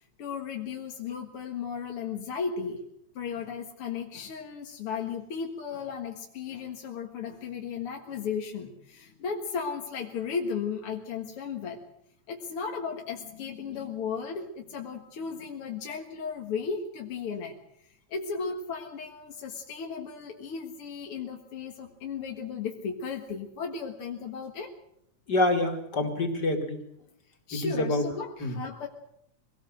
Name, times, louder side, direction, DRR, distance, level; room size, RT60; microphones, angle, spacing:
voice 1, 0.2-2.8 3.2-11.8 12.3-17.6 17.8-24.7 27.5-28.9, left 6 dB, 50° left, 1 dB, 2.4 m, -35 dB
voice 2, 25.3-26.8 27.5-28.0 28.4-28.5, left 2 dB, 35° left, 5 dB, 3.3 m, -26 dB
24.0 x 18.5 x 7.9 m, 0.74 s
omnidirectional pair, 3.3 m